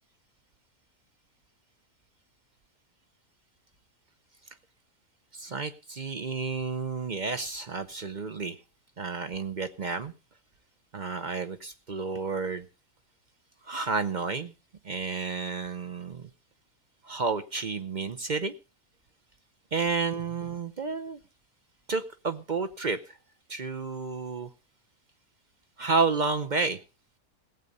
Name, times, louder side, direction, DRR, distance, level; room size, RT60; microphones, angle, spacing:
voice 1, 5.3-8.6 9.0-10.1 10.9-12.7 13.6-14.5 14.8-16.3 17.0-18.5 19.7-21.2 21.9-23.2 23.5-24.5 25.8-26.8, right 4 dB, 45° right, 9 dB, 0.6 m, -31 dB
17.5 x 8.2 x 5.3 m, 0.34 s
omnidirectional pair, 1.6 m